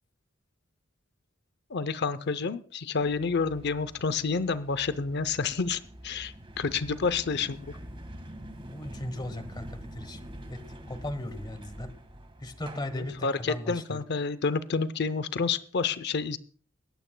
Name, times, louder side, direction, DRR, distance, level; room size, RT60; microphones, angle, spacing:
voice 1, 1.7-7.8 13.0-16.4, left 5 dB, 55° left, 15 dB, 0.6 m, -29 dB
sound 1, 3.0-13.2, equal, 25° right, 1.6 m, -46 dB
voice 2, 8.7-10.2 10.5-11.9 12.4-14.0, left 1 dB, 20° left, 12 dB, 1.2 m, -37 dB
20.0 x 15.0 x 2.2 m, 0.43 s
head